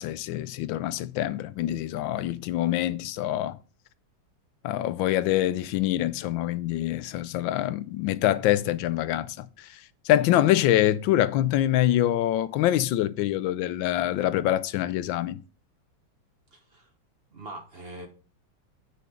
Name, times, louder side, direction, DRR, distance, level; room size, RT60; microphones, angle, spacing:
voice 1, 0.0-3.6 4.6-9.7 10.1-15.4, left 13 dB, 80° left, 1.3 m, -25 dB
voice 2, 16.5-16.9 17.3-18.1, right 1 dB, 35° right, 1.1 m, -42 dB
9.4 x 4.9 x 5.0 m
omnidirectional pair, 2.2 m